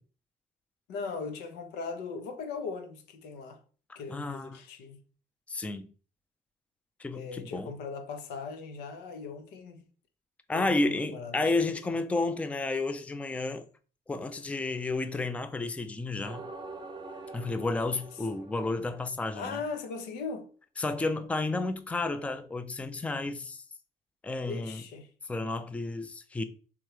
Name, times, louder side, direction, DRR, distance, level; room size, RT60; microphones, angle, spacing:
voice 1, 0.9-3.6 3.9-5.0 7.1-9.8 10.5-11.5 11.8-11.9 19.3-20.5 24.4-25.1, left 4 dB, 90° left, 1.0 m, -39 dB
voice 2, 4.1-4.6 5.5-5.9 7.0-7.7 10.5-13.6 14.1-16.4 17.3-19.6 20.8-23.6 24.2-24.8 25.3-26.4, left 2 dB, 10° left, 0.4 m, -31 dB
sound 1, 16.2-19.6, right 3 dB, 25° right, 0.7 m, -45 dB
3.5 x 3.0 x 4.7 m
cardioid pair, 110°, 17 cm